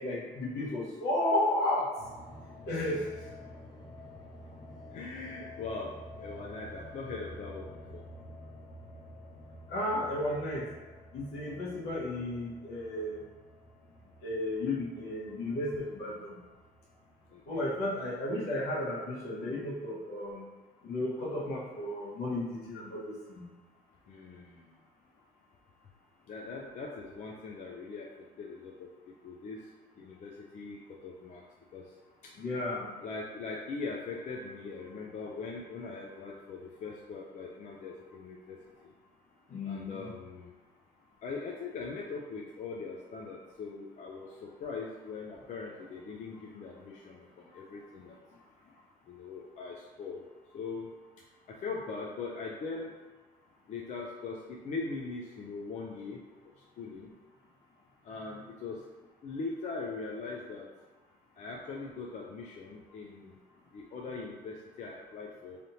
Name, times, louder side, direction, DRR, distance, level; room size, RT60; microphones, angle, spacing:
voice 1, 0.0-1.9 2.7-3.0 9.7-10.7 11.1-13.2 14.2-16.4 17.5-20.4 20.8-23.5 32.4-32.9 39.5-40.1, left 1 dB, 70° left, -5 dB, 1.3 m, -33 dB
sound 1, 2.0-18.0, left 1 dB, 25° left, 1.1 m, -50 dB
voice 2, 2.7-3.3 4.9-8.0 17.3-17.6 24.1-24.8 26.3-28.9 29.2-29.7 30.0-31.4 31.7-31.9 32.2-32.3 33.0-38.9 39.6-40.5 41.2-48.2 49.1-50.3 50.5-50.9 51.5-52.9 53.7-57.1 58.0-58.9 59.2-60.7 61.4-63.3 63.7-65.6, left 4 dB, 45° left, -2 dB, 0.5 m, -41 dB
4.1 x 3.3 x 2.7 m, 1.3 s
cardioid pair, 110°, 17 cm